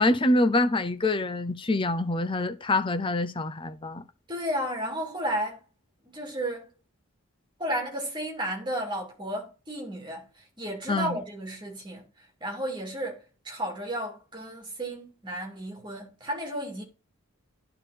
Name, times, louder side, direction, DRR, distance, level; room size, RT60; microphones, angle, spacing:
voice 1, 0.0-4.0 10.9-11.2, left 2 dB, 25° left, 0.6 m, -25 dB
voice 2, 4.3-5.6 6.0-6.7 7.6-16.8, right 1 dB, 20° right, 2.4 m, -33 dB
11.0 x 3.9 x 4.1 m
head